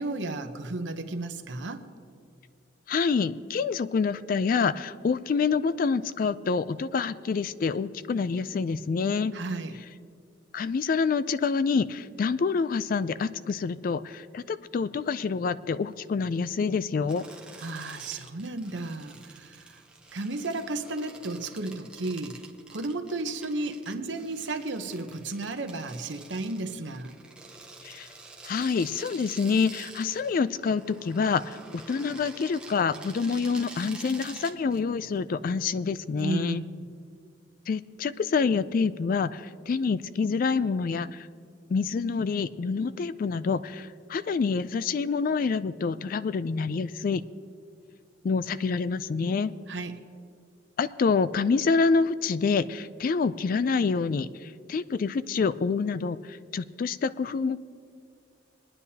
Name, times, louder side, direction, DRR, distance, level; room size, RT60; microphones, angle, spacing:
voice 1, 0.0-1.9 9.3-9.8 17.6-19.8 20.1-22.4 22.7-27.1 36.2-36.8 49.7-49.9, right 2 dB, 65° right, 7 dB, 0.8 m, -33 dB
voice 2, 2.9-9.4 10.5-17.2 27.8-28.1 28.4-36.6 37.7-41.3 41.7-47.2 48.2-49.5 50.8-57.6, left 5 dB, 45° left, 15 dB, 0.3 m, -27 dB
sound 1, 17.1-36.4, right 3 dB, 5° right, 0.8 m, -48 dB
22.5 x 9.9 x 2.8 m, 2.3 s
head